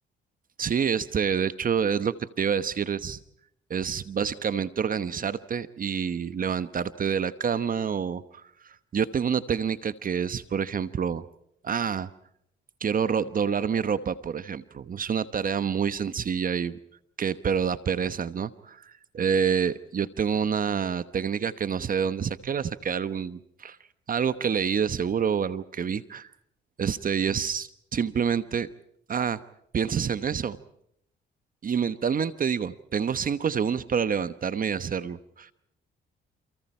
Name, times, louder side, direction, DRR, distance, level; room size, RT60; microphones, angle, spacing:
voice 1, 0.6-3.2 3.7-11.2 11.6-12.1 12.8-16.8 17.2-23.8 24.1-26.3 26.8-28.7 29.1-29.4 29.7-30.6 31.6-35.5, right 7 dB, 45° right, 14 dB, 1.1 m, -27 dB
29.0 x 28.5 x 4.5 m, 0.75 s
cardioid pair, 90°, 20 cm